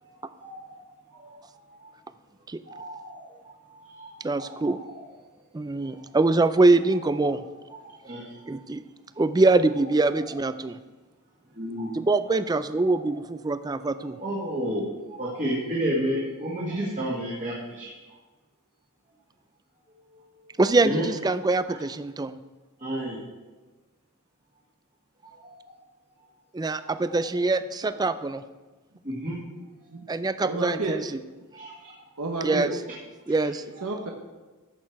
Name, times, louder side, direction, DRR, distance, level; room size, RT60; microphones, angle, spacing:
voice 1, 0.0-0.8 1.1-1.9 2.7-5.1 5.8-6.1 7.3-7.4 7.7-8.5 9.1-9.3 10.3-10.4 11.5-12.3 12.8-13.1 14.0-17.9 20.8-21.0 21.7-21.8 22.8-23.2 25.2-25.8 26.8-27.2 29.0-29.4 29.8-29.9 31.5-32.1 33.3-33.5 33.8-33.9, equal, 35° right, -6 dB, 1.9 m, -33 dB
voice 2, 4.2-4.8 5.5-7.4 8.5-8.8 9.2-10.8 11.9-14.2 20.6-22.4 26.5-28.4 30.1-31.0 32.4-32.7 33.3-33.6, right 2 dB, 20° right, 12 dB, 0.4 m, -23 dB
voice 3, 30.4-31.0 32.2-32.7 33.6-34.1, right 3 dB, 85° right, 1 dB, 1.1 m, -30 dB
14.5 x 6.5 x 4.6 m, 1.2 s
head